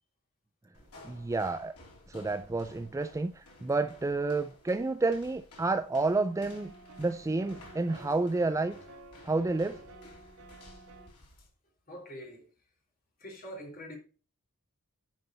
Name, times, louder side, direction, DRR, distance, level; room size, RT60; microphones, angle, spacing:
sound 1, 0.7-11.5, left 2 dB, 85° left, 3.1 m, -55 dB
voice 1, 1.0-1.7 2.1-6.7 7.0-8.7 9.2-9.8, right 3 dB, 15° right, 0.3 m, -30 dB
sound 2, 6.0-11.1, right 2 dB, 70° right, 1.6 m, -51 dB
voice 2, 11.9-12.7 13.2-14.0, equal, 40° left, 3.1 m, -45 dB
10.5 x 5.3 x 4.3 m
head